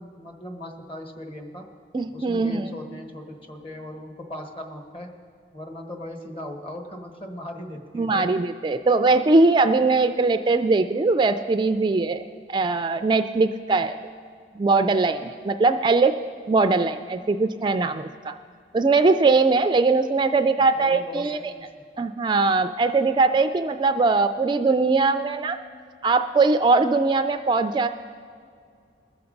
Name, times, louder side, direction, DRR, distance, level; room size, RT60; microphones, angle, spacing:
voice 1, 0.0-1.7 2.1-5.2 5.5-8.4 9.2-9.3 20.6-21.6, left 1 dB, 30° left, 4 dB, 1.3 m, -38 dB
voice 2, 1.9-2.7 7.9-12.2 12.5-14.0 14.6-16.1 16.5-18.3 18.7-21.5 22.0-25.6 26.0-27.9, right 3 dB, 25° right, 9 dB, 0.3 m, -21 dB
20.5 x 6.9 x 5.2 m, 2.2 s
head